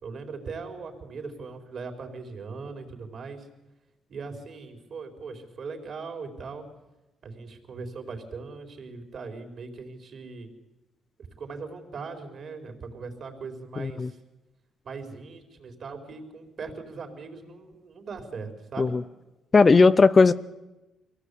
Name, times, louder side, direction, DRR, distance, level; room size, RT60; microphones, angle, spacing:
voice 1, 0.0-3.5 4.1-6.7 7.2-10.5 11.4-14.2 14.8-18.9, right 4 dB, 55° right, 5 dB, 4.4 m, -39 dB
voice 2, 13.8-14.1 18.8-19.0 19.5-20.3, left 4 dB, 30° left, 14 dB, 0.7 m, -17 dB
24.0 x 17.0 x 8.5 m, 1.0 s
cardioid pair, 90°, 0 cm